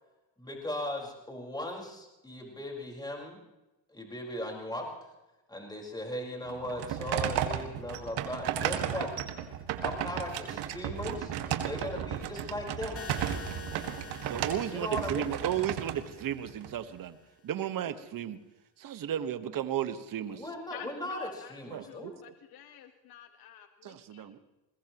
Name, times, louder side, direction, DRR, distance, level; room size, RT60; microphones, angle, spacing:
voice 1, 0.4-3.4 3.9-4.8 5.5-9.1 9.8-11.3 11.6-13.0 14.7-15.3 20.3-22.2, left 1 dB, 10° left, 0 dB, 4.8 m, -38 dB
sound 1, 6.5-16.7, right 9 dB, 65° right, 1.9 m, -34 dB
sound 2, 13.0-17.0, left 4 dB, 30° left, 1.8 m, -47 dB
voice 2, 14.2-17.2 17.4-18.4 18.8-20.4 21.7-22.1 23.8-24.4, right 10 dB, 50° right, 11 dB, 1.4 m, -34 dB
voice 3, 20.7-21.5 21.9-24.3, left 10 dB, 55° left, 7 dB, 1.4 m, -49 dB
21.5 x 21.0 x 3.0 m, 1.0 s
supercardioid pair, 90°, 44 cm